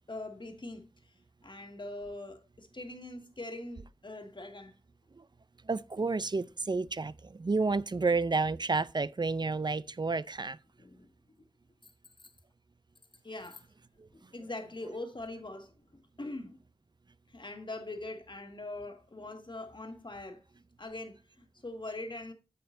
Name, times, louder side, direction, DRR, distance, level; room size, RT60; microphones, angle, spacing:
voice 1, 0.1-0.9 1.4-4.7 10.8-11.1 13.2-13.6 14.1-16.6 17.3-20.4 20.8-22.3, left 2 dB, 50° left, 1.8 m, -42 dB
voice 2, 5.7-10.6, right 3 dB, 45° right, 0.4 m, -30 dB
8.7 x 8.0 x 2.6 m
wide cardioid pair, 55°, 10 cm